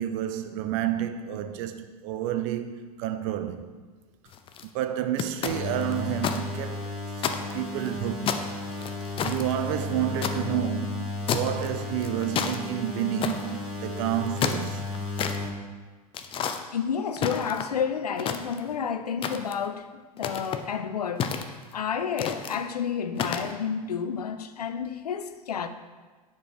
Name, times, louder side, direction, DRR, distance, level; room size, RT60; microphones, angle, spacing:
voice 1, 0.0-3.7 4.7-6.9 7.5-8.3 9.2-14.8, right 11 dB, 50° right, 0.6 m, -30 dB
sound 1, 4.3-4.6 5.2-6.4 6.7-6.8 7.2-7.9 8.3-10.4 11.3-11.7 12.0-12.6 13.2-13.5 14.2-15.4 16.1-16.6 17.2-17.8 18.2-18.8 19.2-19.7 20.2-20.6 21.2-21.7 22.2-22.6 23.1-23.5, left 7 dB, 25° left, 0.5 m, -30 dB
sound 2, 5.5-15.5, left 3 dB, 5° right, 1.8 m, -34 dB
voice 2, 16.7-25.7, left 7 dB, 90° left, 0.5 m, -30 dB
7.0 x 4.6 x 4.9 m
hypercardioid pair, 100°, 19 cm